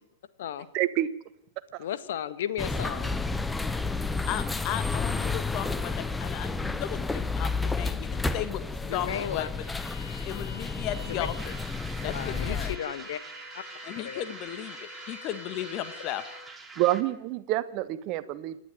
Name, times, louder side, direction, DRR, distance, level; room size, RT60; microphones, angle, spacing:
voice 1, 0.7-1.1 1.7-1.8 16.8-18.6, right 15 dB, 40° right, 14 dB, 1.4 m, -27 dB
voice 2, 1.8-3.1 8.8-9.5 11.1-11.3 12.0-13.2 13.5-13.6 14.0-14.2, left 10 dB, 55° left, 13 dB, 1.7 m, -34 dB
sound 1, 2.6-12.8, left 4 dB, 5° left, 1.0 m, -31 dB
voice 3, 4.3-8.6 8.9-9.6 10.3-11.6 12.0-12.8 13.8-16.2, left 12 dB, 35° left, 12 dB, 1.6 m, -35 dB
Bowed string instrument, 9.5-16.5, left 3 dB, 85° left, 7.3 m, -48 dB
sound 2, 11.4-17.2, right 4 dB, 10° right, 2.7 m, -45 dB
28.0 x 11.5 x 9.3 m, 0.80 s
figure-of-eight pair, 100°, 0 cm